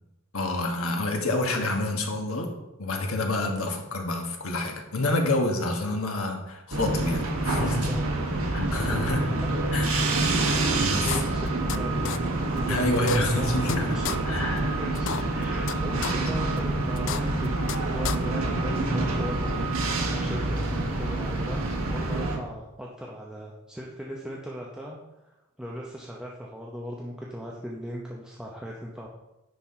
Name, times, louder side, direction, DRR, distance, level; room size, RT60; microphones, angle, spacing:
voice 1, 0.3-2.5 2.8-7.9 8.5-9.2 9.7-10.1 10.4-11.1 12.7-13.9 14.3-14.7 16.1-16.3, left 2 dB, 75° left, 3 dB, 1.3 m, -28 dB
sound 1, 6.7-22.4, right 2 dB, 80° right, 1.3 m, -27 dB
voice 2, 7.5-8.1 8.3-9.8 11.0-13.5 13.9-19.7 20.2-25.0 25.2-29.1, equal, 5° right, -3 dB, 0.7 m, -39 dB
sound 2, 10.6-10.7 11.1-11.8 12.0-12.2 12.6-12.7 12.9-13.8 14.0-14.2 14.6-14.7 14.9-15.7 16.0-16.1 16.6-16.7 16.9-17.8 18.0-18.2, left 9 dB, 60° left, 0.4 m, -32 dB
10.0 x 4.2 x 4.3 m, 0.96 s
head